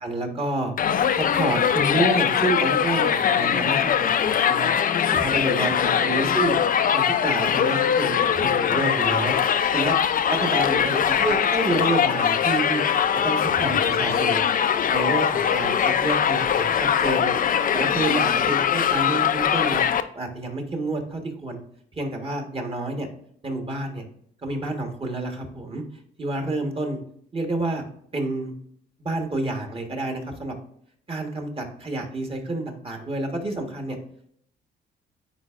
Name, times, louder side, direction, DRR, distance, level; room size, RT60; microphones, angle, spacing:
voice 1, 0.0-0.7 1.1-4.7 5.1-6.5 6.9-9.3 9.7-10.0 10.3-10.9 11.2-12.8 13.2-14.4 14.9-17.3 17.7-19.9 20.1-21.6 21.9-23.1 23.4-24.0 24.4-25.8 26.2-27.0 27.3-27.8 28.1-28.5 29.0-30.5 31.1-34.0, right 2 dB, 30° right, 3 dB, 1.3 m, -28 dB
Crowd, 0.8-20.0, left 8 dB, 45° left, 0.5 m, -22 dB
9.6 x 4.1 x 2.5 m, 0.66 s
cardioid pair, 90°, 20 cm